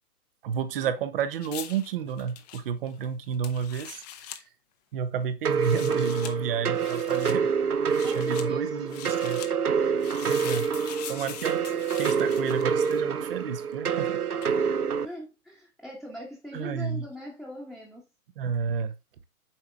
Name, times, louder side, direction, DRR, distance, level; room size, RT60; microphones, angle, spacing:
voice 1, 0.4-4.4 4.9-9.4 9.8-9.9 10.2-11.6 11.9-14.2 16.5-17.1 18.4-19.0, right 7 dB, 40° right, 1.1 m, -31 dB
sound 1, 1.4-4.4 5.5-6.3 6.8-7.4 7.9-8.5 8.9-9.5 10.0-13.2 14.4-14.6, left 11 dB, 30° left, 0.9 m, -42 dB
sound 2, 5.4-15.1, right 6 dB, 85° right, 0.8 m, -27 dB
voice 2, 8.0-9.0 15.0-18.0, equal, ahead, 1.3 m, -41 dB
7.6 x 4.8 x 3.4 m
figure-of-eight pair, 125°, 44 cm